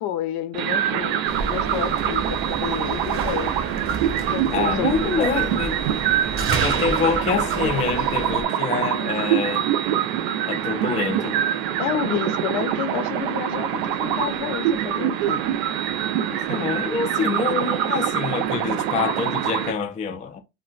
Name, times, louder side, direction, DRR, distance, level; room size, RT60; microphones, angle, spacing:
voice 1, 0.0-3.5 4.3-5.3 11.8-15.4, left 10 dB, 65° left, 0.7 m, -30 dB
sound 1, 0.5-19.7, right 10 dB, 75° right, 0.5 m, -24 dB
sound 2, 1.3-8.4, right 4 dB, 35° right, 0.7 m, -30 dB
voice 2, 4.5-5.7 6.6-9.7 10.5-11.4 16.3-20.4, left 5 dB, 20° left, 0.3 m, -26 dB
2.2 x 2.2 x 3.8 m
supercardioid pair, 110°, 39 cm